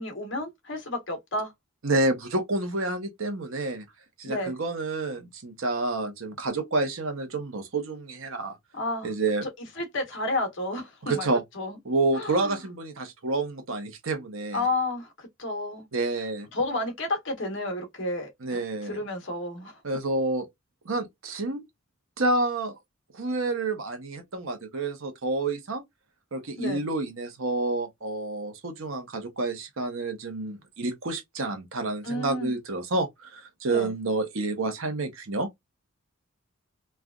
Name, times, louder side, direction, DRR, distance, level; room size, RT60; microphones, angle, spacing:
voice 1, 0.0-1.5 4.3-4.5 8.7-9.1 9.4-9.5 9.8-11.3 11.5-11.8 12.1-12.6 14.5-15.8 16.5-18.6 18.9-19.8 26.6-26.8 32.0-32.5 33.7-33.9, left 2 dB, 60° left, 1.2 m, -31 dB
voice 2, 1.8-3.8 4.2-8.6 9.0-9.5 11.0-11.4 11.8-14.6 15.9-16.5 18.4-19.0 19.8-20.5 20.8-21.6 22.2-22.7 23.1-25.8 26.3-35.5, right 2 dB, 75° right, 0.9 m, -29 dB
3.2 x 2.4 x 2.3 m
head